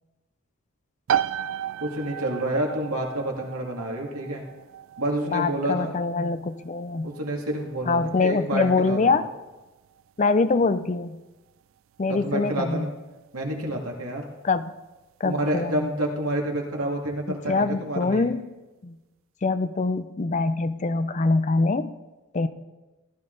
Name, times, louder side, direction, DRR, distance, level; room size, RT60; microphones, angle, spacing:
sound 1, 1.1-15.6, right 9 dB, 65° right, 0.3 m, -36 dB
voice 1, 1.8-4.4 5.0-6.0 7.0-9.2 12.1-12.9 13.3-14.2 15.2-18.3, right 1 dB, 90° right, 0 dB, 2.3 m, -28 dB
voice 2, 5.3-7.1 7.9-9.2 10.2-11.2 12.0-12.9 14.4-14.7 15.2-15.9 17.3-18.4 18.8-19.0 19.4-21.9 22.3-22.5, left 3 dB, 35° left, 12 dB, 0.5 m, -24 dB
15.0 x 12.0 x 3.9 m, 1.1 s
head